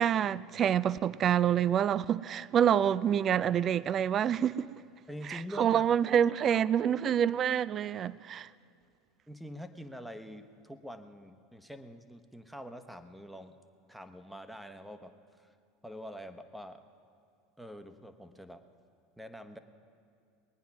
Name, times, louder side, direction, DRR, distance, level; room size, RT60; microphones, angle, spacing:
voice 1, 0.0-4.5 5.3-8.5, right 9 dB, 40° right, 0.3 m, -27 dB
voice 2, 5.1-5.8 9.3-13.6 13.9-15.5 15.8-16.8 17.6-18.6 19.2-19.6, equal, ahead, 0.9 m, -45 dB
20.5 x 9.4 x 6.0 m
hypercardioid pair, 85°, 0 cm